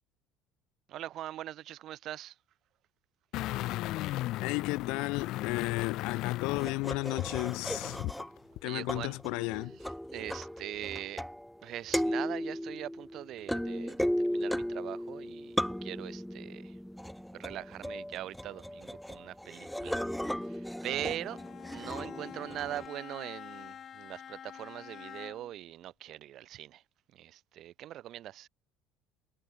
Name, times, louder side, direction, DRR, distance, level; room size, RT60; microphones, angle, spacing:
voice 1, 0.9-2.3 8.6-9.2 10.1-11.2 11.6-15.6 15.8-16.7 17.4-20.0 20.5-21.4 21.7-26.8 27.1-28.5, right 13 dB, 45° right, 0.4 m, -41 dB
sound 1, 3.3-8.2 8.6-8.7, left 17 dB, 55° left, 1.3 m, -36 dB
voice 2, 4.4-8.0 8.6-9.8, left 26 dB, 75° left, 0.5 m, -34 dB
sound 2, 6.6-8.5 8.9-11.6 11.9-22.9, equal, ahead, 1.3 m, -36 dB
Bowed string instrument, 21.2-25.6, left 9 dB, 35° left, 2.4 m, -47 dB
cardioid pair, 155°, 0 cm